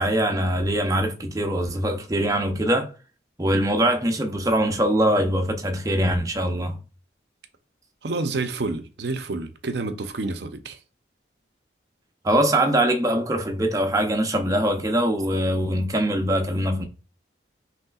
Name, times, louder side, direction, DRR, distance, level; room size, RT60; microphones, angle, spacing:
voice 1, 0.0-2.9 3.4-6.8 12.2-16.9, right 1 dB, 20° right, 0.6 m, -22 dB
voice 2, 8.0-10.8, right 3 dB, 60° right, 0.6 m, -29 dB
5.4 x 3.3 x 2.3 m
head